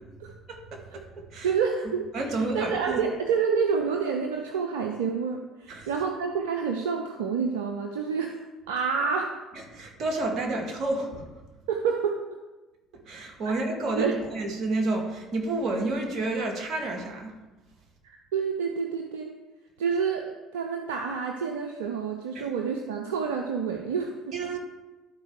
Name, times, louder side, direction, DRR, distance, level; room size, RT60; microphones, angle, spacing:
voice 1, 0.3-1.5 2.1-3.0 5.7-5.9 9.7-11.2 13.1-17.3 22.3-22.5 24.3-24.6, right 2 dB, 50° right, 1 dB, 1.9 m, -30 dB
voice 2, 1.4-2.1 2.5-8.3 8.7-9.3 11.7-12.2 13.4-13.5 13.9-14.2 18.0-19.4 19.8-24.3, right 6 dB, 75° right, 3 dB, 0.6 m, -28 dB
12.0 x 4.4 x 4.8 m, 1.2 s
figure-of-eight pair, 55°, 0 cm